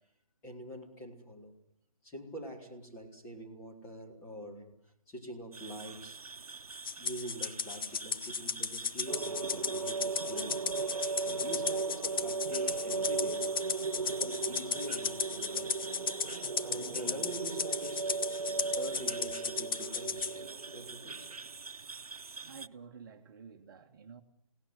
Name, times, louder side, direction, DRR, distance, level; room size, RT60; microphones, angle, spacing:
voice 1, 0.4-1.5 2.0-6.2 7.0-10.6 11.3-13.6 14.0-15.7 16.6-18.1 18.7-21.4, equal, 15° left, 4.1 m, -45 dB
sound 1, 5.5-22.7, right 4 dB, 85° right, 1.0 m, -47 dB
Rattle (instrument), 6.8-20.3, left 6 dB, 40° left, 1.1 m, -35 dB
sound 2, 9.1-21.3, right 4 dB, 60° right, 1.3 m, -37 dB
voice 2, 16.7-17.2 22.4-24.2, right 6 dB, 35° right, 1.7 m, -51 dB
29.5 x 18.5 x 8.2 m
figure-of-eight pair, 155°, 19 cm